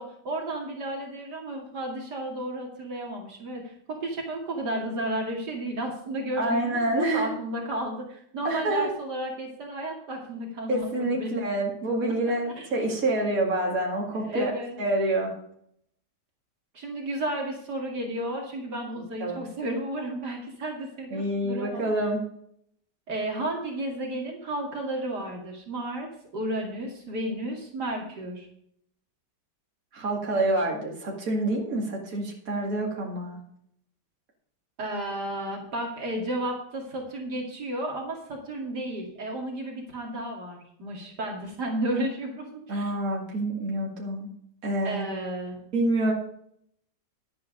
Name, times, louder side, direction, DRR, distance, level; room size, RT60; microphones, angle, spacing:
voice 1, 0.0-11.4 12.6-12.7 14.1-14.8 16.7-21.8 23.1-28.5 34.8-42.8 44.8-45.6, right 1 dB, 70° right, 0 dB, 2.8 m, -33 dB
voice 2, 6.4-7.3 8.4-8.9 10.7-14.5 14.8-15.3 19.2-19.4 21.1-22.2 29.9-33.4 42.7-44.3 44.6-45.1 45.7-46.1, right 1 dB, 55° right, -2 dB, 2.8 m, -27 dB
11.0 x 8.6 x 5.1 m, 0.69 s
omnidirectional pair, 1.9 m